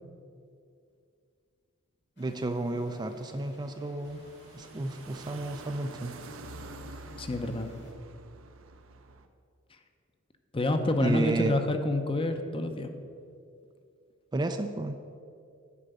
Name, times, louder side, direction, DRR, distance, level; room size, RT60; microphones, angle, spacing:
sound 1, 2.2-7.9, equal, 55° left, 1.8 m, -54 dB
voice 1, 2.2-4.2 4.5-6.1 11.0-11.5 14.3-15.0, right 2 dB, 20° right, 7 dB, 0.4 m, -31 dB
sound 2, 4.0-9.3, right 2 dB, 70° right, 0.7 m, -47 dB
voice 2, 7.2-7.8 10.5-12.9, left 2 dB, 25° left, 7 dB, 0.7 m, -28 dB
9.9 x 5.1 x 7.8 m, 2.4 s
head